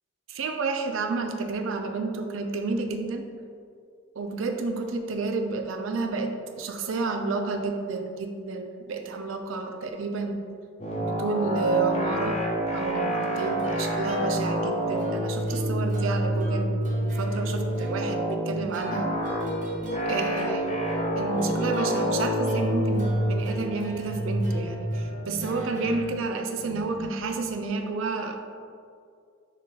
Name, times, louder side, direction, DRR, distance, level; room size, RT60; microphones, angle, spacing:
voice 1, 0.3-3.3 4.2-10.4 10.9-12.4 12.7-19.2 20.0-20.7 21.2-28.4, right 3 dB, 75° right, 5 dB, 0.4 m, -30 dB
sound 1, 10.8-27.3, equal, 30° left, 0.7 m, -28 dB
sound 2, 13.2-26.2, right 1 dB, 40° right, 0.7 m, -39 dB
4.1 x 3.8 x 3.3 m, 2.3 s
head